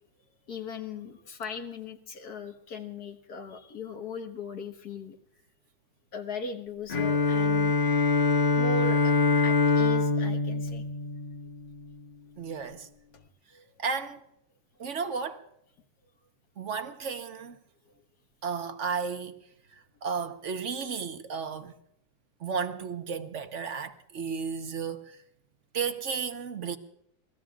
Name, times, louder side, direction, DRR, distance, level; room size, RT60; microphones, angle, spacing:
voice 1, 0.5-5.2 6.1-7.8 8.1-8.2 8.6-10.8 13.5-13.6, left 4 dB, 55° left, 1.9 m, -38 dB
Bowed string instrument, 6.9-11.8, left 3 dB, 80° left, 2.5 m, -24 dB
voice 2, 12.4-12.9 13.8-14.2 14.8-15.4 16.6-17.6 18.4-19.4 20.0-21.7 22.4-25.2 25.7-26.8, right 6 dB, 45° right, 1.2 m, -33 dB
28.0 x 19.0 x 2.4 m
omnidirectional pair, 2.1 m